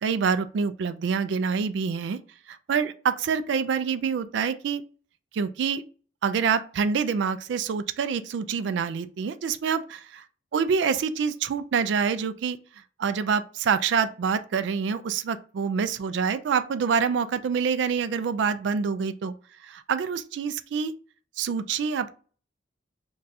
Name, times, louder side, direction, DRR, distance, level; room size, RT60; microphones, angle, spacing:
voice 1, 0.0-2.2 2.5-4.8 5.3-5.8 6.2-10.2 10.5-12.6 13.0-19.3 19.6-20.9 21.4-22.1, right 6 dB, 70° right, 0.3 m, -26 dB
2.6 x 2.3 x 3.9 m
head